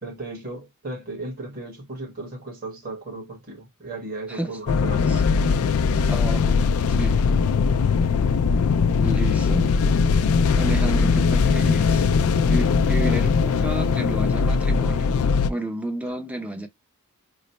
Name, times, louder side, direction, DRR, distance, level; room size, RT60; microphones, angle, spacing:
voice 1, 0.0-5.1 16.0-16.1, right 2 dB, 40° right, 1.4 m, -36 dB
sound 1, 4.7-15.5, left 5 dB, 70° left, 0.4 m, -20 dB
voice 2, 6.1-6.6 6.9-7.2 9.0-9.7 10.6-12.1 12.5-15.2 15.5-16.7, right 1 dB, 5° right, 0.6 m, -31 dB
3.1 x 2.1 x 4.1 m
head